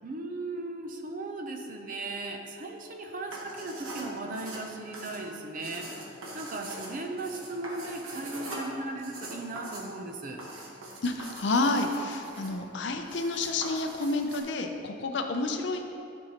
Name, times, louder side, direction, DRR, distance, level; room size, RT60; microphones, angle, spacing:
voice 1, 0.0-10.4, right 2 dB, 40° right, 3 dB, 0.6 m, -37 dB
sound 1, 3.2-14.4, right 1 dB, 90° right, 1.3 m, -42 dB
voice 2, 11.0-15.9, left 2 dB, 60° left, 5 dB, 0.5 m, -29 dB
10.5 x 5.4 x 2.9 m, 2.6 s
head